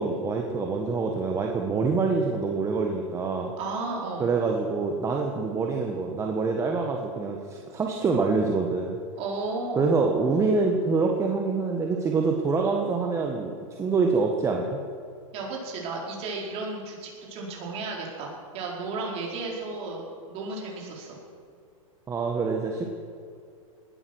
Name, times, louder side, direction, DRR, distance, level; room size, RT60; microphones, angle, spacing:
voice 1, 0.0-3.5 4.2-9.0 9.8-14.8 22.1-22.8, right 4 dB, 15° right, 1 dB, 1.3 m, -26 dB
voice 2, 3.6-4.3 9.2-10.0 15.3-21.2, right 3 dB, 35° right, -2 dB, 4.6 m, -34 dB
19.0 x 12.0 x 6.3 m, 2.3 s
hypercardioid pair, 140°, 18 cm